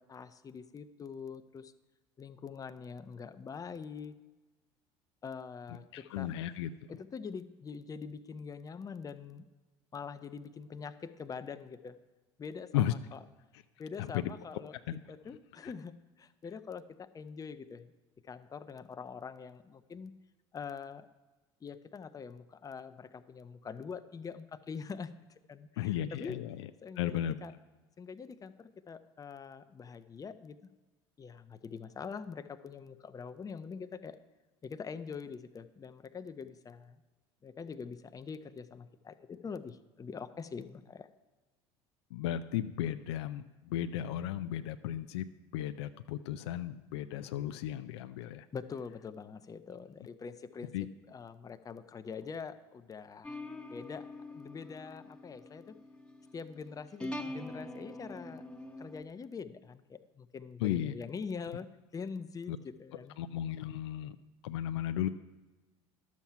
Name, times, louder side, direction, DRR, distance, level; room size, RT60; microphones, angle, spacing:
voice 1, 0.0-1.7 2.2-4.1 5.2-6.3 6.9-9.5 9.9-12.0 12.4-13.2 13.8-14.8 15.1-17.9 18.2-20.1 20.5-21.1 21.6-25.1 25.5-26.4 26.8-27.5 28.0-30.6 31.2-34.2 34.6-37.0 37.4-41.1 48.5-50.7 51.1-53.4 53.7-55.8 56.3-58.4 58.8-61.7 61.9-63.1, left 5 dB, 25° left, 11 dB, 0.7 m, -44 dB
voice 2, 5.9-6.7 12.7-12.9 14.0-14.3 14.9-15.0 15.6-15.7 25.8-26.6 27.0-27.4 42.1-45.3 45.5-48.5 50.7-50.9 60.6-60.9 62.5-62.6 63.2-64.2 64.4-65.1, left 12 dB, 75° left, 10 dB, 0.5 m, -34 dB
sound 1, 53.2-59.0, left 1 dB, 5° left, 1.2 m, -44 dB
11.5 x 7.3 x 5.7 m, 1.2 s
hypercardioid pair, 75°, 14 cm